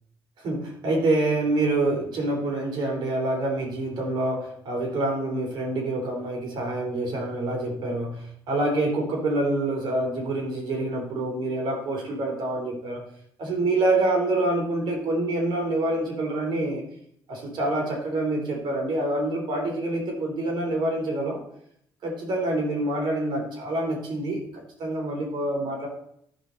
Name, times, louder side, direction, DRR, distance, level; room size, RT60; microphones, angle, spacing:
voice 1, 0.4-13.0 13.4-16.8 17.3-21.4 22.0-25.9, right 2 dB, 70° right, 1 dB, 3.7 m, -26 dB
13.0 x 5.9 x 4.0 m, 0.69 s
cardioid pair, 100°, 8 cm